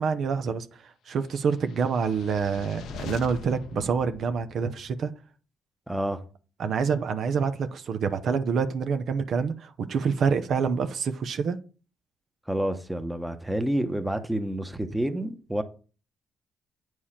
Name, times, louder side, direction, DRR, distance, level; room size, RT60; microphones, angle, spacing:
voice 1, 0.0-5.1 6.6-11.6, right 6 dB, 60° right, 0.8 m, -27 dB
sound 1, 1.5-5.0, left 7 dB, 80° left, 0.7 m, -42 dB
voice 2, 5.9-6.2 12.5-15.6, right 1 dB, 5° right, 1.0 m, -29 dB
8.8 x 4.7 x 5.7 m
cardioid pair, 90°, 0 cm